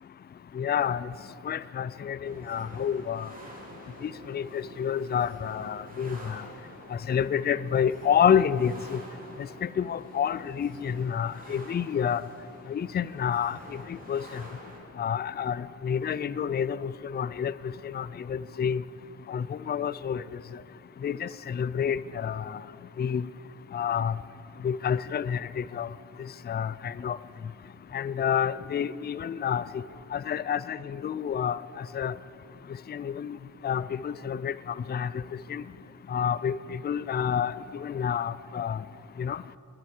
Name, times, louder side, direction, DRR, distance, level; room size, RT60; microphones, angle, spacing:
voice 1, 0.6-1.1 1.5-3.3 4.0-6.4 6.9-9.0 9.4-12.2 12.7-13.6 13.9-14.4 15.0-17.5 17.8-18.8 19.3-20.2 21.0-22.6 23.0-23.3 23.7-24.1 24.6-25.9 26.5-27.2 27.9-29.6 30.1-32.1 32.9-33.4 33.6-34.5 34.9-35.2 35.5-35.6 36.1-38.8 39.2-39.4, left 8 dB, 35° left, 17 dB, 0.4 m, -29 dB
sound 1, 2.2-14.8, right 1 dB, 25° right, 3.1 m, -48 dB
20.5 x 7.8 x 7.2 m, 2.6 s
wide cardioid pair, 85°, 31 cm